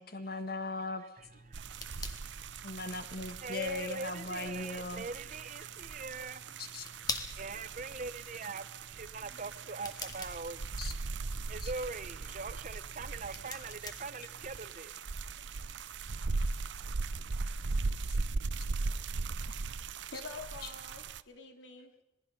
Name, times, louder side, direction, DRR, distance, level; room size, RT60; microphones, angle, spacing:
voice 1, 0.0-1.0 2.6-5.0 6.6-6.9 10.8-10.9 11.6-11.7 20.6-20.7, left 2 dB, 50° left, 9 dB, 1.6 m, -38 dB
voice 2, 1.0-1.6 3.4-6.5 7.4-10.6 11.5-15.2 18.2-18.4, right 3 dB, 40° right, 13 dB, 0.9 m, -42 dB
sound 1, 1.2-14.7, left 3 dB, 20° left, 1.6 m, -47 dB
sound 2, 1.5-21.2, right 3 dB, 70° right, 0.7 m, -39 dB
voice 3, 20.1-22.0, left 3 dB, 70° left, 6 dB, 2.7 m, -47 dB
26.5 x 19.5 x 5.4 m, 0.89 s
head